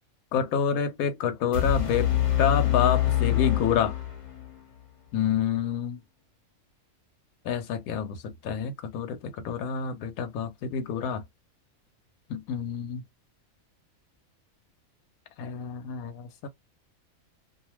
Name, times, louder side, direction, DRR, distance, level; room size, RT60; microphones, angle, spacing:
voice 1, 0.3-2.1 2.4-3.9 5.1-6.0 7.5-8.2 8.4-9.2 9.4-11.2 12.3-13.0 15.4-16.5, left 7 dB, 85° left, 1.0 m, -28 dB
sound 1, 1.5-4.5, left 12 dB, 40° left, 0.8 m, -25 dB
2.4 x 2.2 x 3.0 m
omnidirectional pair, 1.5 m